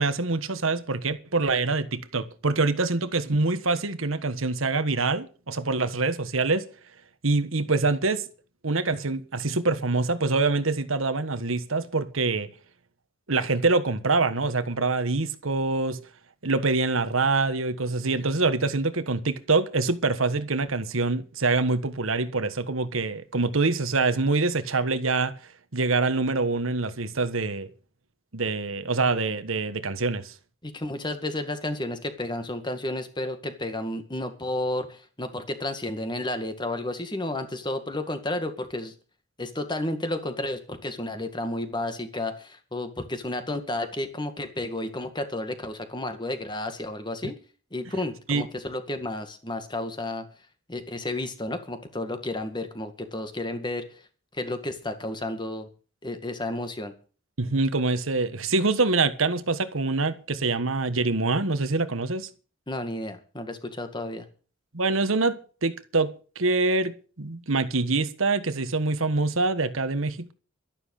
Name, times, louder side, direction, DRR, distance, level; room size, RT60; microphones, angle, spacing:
voice 1, 0.0-6.7 7.2-8.2 8.6-12.5 13.3-16.0 16.4-25.3 25.7-27.7 28.3-30.3 48.3-48.5 57.4-62.3 64.7-70.3, right 3 dB, 90° right, 1.5 m, -25 dB
voice 2, 30.6-38.9 39.4-47.4 47.7-50.3 50.7-54.0 54.3-55.7 56.0-56.9 62.7-64.3, left 1 dB, 20° left, 2.0 m, -32 dB
12.5 x 11.5 x 6.6 m
head